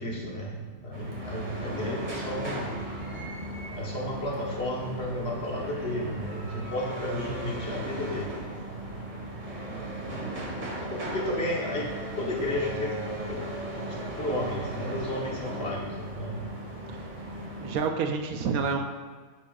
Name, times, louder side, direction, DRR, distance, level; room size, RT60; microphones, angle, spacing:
voice 1, 0.0-2.7 3.7-8.4 11.1-13.0 13.3-13.4 14.2-16.5, left 1 dB, 45° left, -3 dB, 1.3 m, -33 dB
sound 1, 0.9-17.7, right 1 dB, 35° right, 1.4 m, -36 dB
voice 2, 3.0-3.3 6.5-6.7 9.7-10.3 17.6-18.9, right 5 dB, 80° right, 5 dB, 1.1 m, -31 dB
9.6 x 6.0 x 2.4 m, 1.5 s
omnidirectional pair, 1.5 m